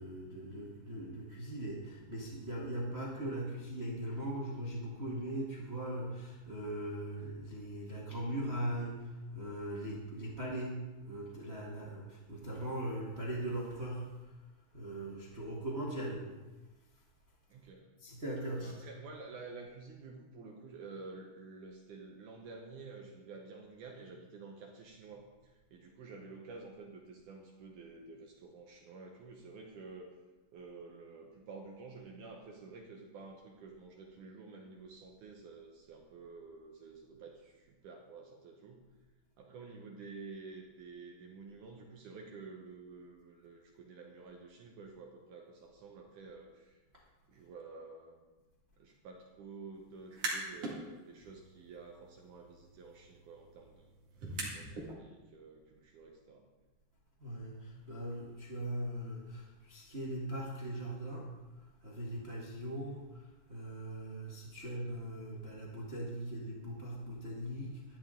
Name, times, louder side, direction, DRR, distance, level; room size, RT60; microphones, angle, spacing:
voice 1, 0.0-14.1 14.7-16.2 18.0-18.8 57.2-61.3 61.8-63.2 63.5-68.0, right 1 dB, 85° right, -5 dB, 0.5 m, -40 dB
voice 2, 17.5-17.9 18.6-25.3 25.7-30.1 30.5-38.8 39.4-46.8 47.3-48.2 48.8-53.9 54.3-56.5, right 4 dB, 70° right, 1 dB, 2.1 m, -50 dB
sound 1, 50.0-50.8 51.2-54.9, right 3 dB, 45° right, 2.7 m, -43 dB
12.5 x 10.5 x 3.8 m, 1.2 s
omnidirectional pair, 4.3 m